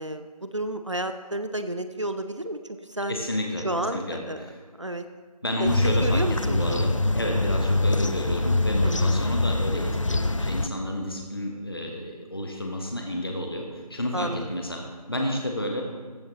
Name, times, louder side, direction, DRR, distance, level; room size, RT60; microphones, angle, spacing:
voice 1, 0.0-2.6 2.9-3.2 3.6-4.5 4.8-5.0 5.6-6.8 8.8-9.2 14.1-14.5, right 1 dB, 45° right, 8 dB, 0.6 m, -31 dB
voice 2, 3.1-4.6 5.4-14.8 15.1-15.8, left 1 dB, 35° left, 1 dB, 1.0 m, -31 dB
sound 1, 5.7-10.7, left 2 dB, 50° left, 0.4 m, -24 dB
14.0 x 9.4 x 2.9 m, 1.4 s
figure-of-eight pair, 175°, 21 cm